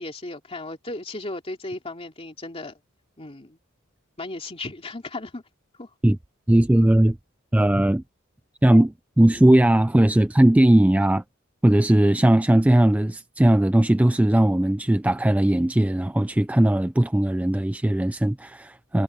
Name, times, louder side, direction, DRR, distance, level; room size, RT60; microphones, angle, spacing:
voice 1, 0.0-2.8 3.2-3.6 4.2-5.4 5.7-5.9, left 2 dB, 30° left, 2.7 m, -35 dB
voice 2, 6.5-7.2 7.5-8.0 8.6-11.2 11.6-19.0, right 1 dB, 5° right, 0.3 m, -18 dB
head